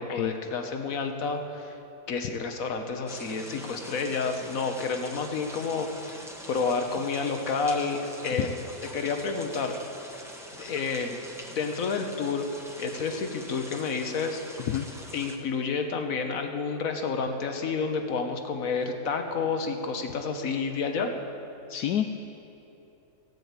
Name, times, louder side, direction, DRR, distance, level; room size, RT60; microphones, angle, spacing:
voice 1, 0.0-1.7 2.1-8.6 8.9-9.8 10.6-11.2 11.5-12.5 12.8-14.4 15.1-21.1, left 4 dB, 60° left, 5 dB, 1.5 m, -30 dB
sound 1, 3.1-15.4, equal, ahead, 1.1 m, -44 dB
voice 2, 21.7-22.2, left 11 dB, 80° left, 7 dB, 1.1 m, -28 dB
16.5 x 9.3 x 8.1 m, 2.9 s
omnidirectional pair, 1.7 m